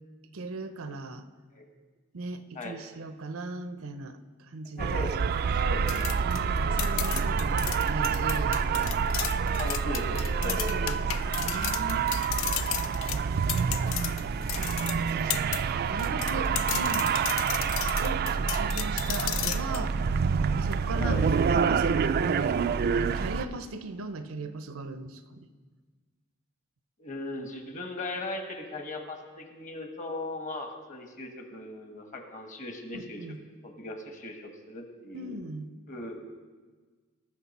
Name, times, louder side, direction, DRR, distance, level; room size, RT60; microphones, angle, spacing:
voice 1, 0.3-1.3 2.1-5.0 6.2-8.9 10.3-12.1 13.1-13.7 14.2-15.3 15.8-17.2 18.0-20.0 20.6-22.6 22.9-25.5 32.9-33.4 35.1-35.7, right 2 dB, 80° right, 11 dB, 0.7 m, -38 dB
voice 2, 4.8-5.1 5.6-6.1 7.2-7.3 9.6-11.0 13.7-13.9 16.3-16.4 21.0-21.2 27.0-33.2 33.6-35.4 35.9-36.2, left 2 dB, 35° left, 5 dB, 1.3 m, -38 dB
sound 1, 4.8-23.5, right 6 dB, 50° right, 0.3 m, -27 dB
sound 2, 5.9-15.6 16.0-19.8, left 14 dB, 65° left, 0.4 m, -34 dB
18.5 x 6.3 x 4.2 m, 1.4 s
head